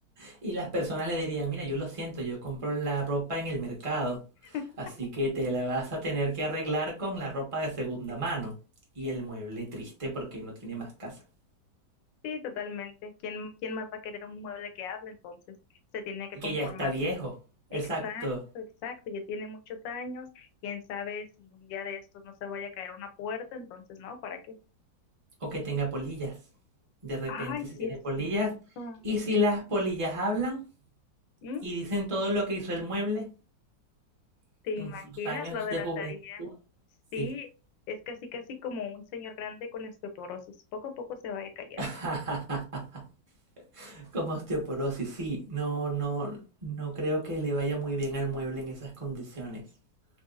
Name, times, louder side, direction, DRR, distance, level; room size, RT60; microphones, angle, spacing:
voice 1, 0.2-4.2 4.5-8.6 8.9-11.2 16.4-17.3 17.7-18.4 25.4-26.4 27.0-28.5 29.0-30.6 31.6-33.3 34.8-34.9 35.2-36.1 36.4-36.5 37.2-37.3 41.8-43.0 43.7-49.6, right 1 dB, 20° right, -1 dB, 1.2 m, -32 dB
voice 2, 12.2-15.4 15.9-16.9 17.7-24.4 27.3-28.4 28.8-29.0 31.4-31.7 34.6-36.5 37.1-37.5 37.9-40.4 40.7-41.8, left 5 dB, 80° left, 7 dB, 1.4 m, -38 dB
4.0 x 3.3 x 2.5 m, 0.32 s
omnidirectional pair, 2.0 m